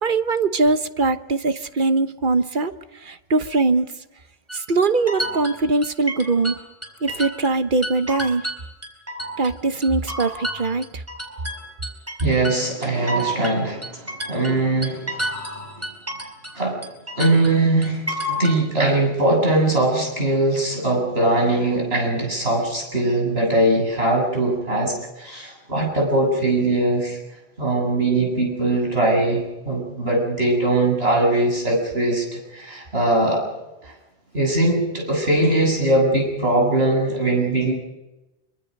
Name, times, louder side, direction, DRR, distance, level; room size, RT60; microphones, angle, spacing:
voice 1, 0.0-2.7 3.0-3.9 4.5-6.5 7.0-8.4 9.4-11.0, right 3 dB, 50° right, 11 dB, 1.2 m, -21 dB
sound 1, 4.5-7.6 7.8-9.5 9.8-16.6 16.8-18.6, equal, 15° right, 4.1 m, -30 dB
voice 2, 12.2-15.2 15.8-15.9 16.5-16.8 17.2-27.2 27.6-33.4 33.8-33.9 34.3-37.7, right 2 dB, 70° right, 0 dB, 8.3 m, -21 dB
26.0 x 24.5 x 5.4 m, 1.0 s
omnidirectional pair, 1.1 m